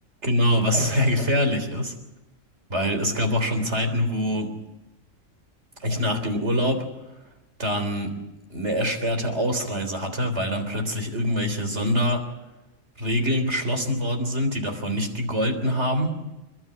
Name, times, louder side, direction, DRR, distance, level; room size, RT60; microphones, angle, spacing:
voice 1, 0.2-1.9 2.7-4.5 5.8-6.9 7.6-8.1 8.5-12.2 13.0-16.2, equal, 55° right, 6 dB, 3.9 m, -24 dB
29.5 x 12.5 x 9.5 m, 0.98 s
omnidirectional pair, 1.4 m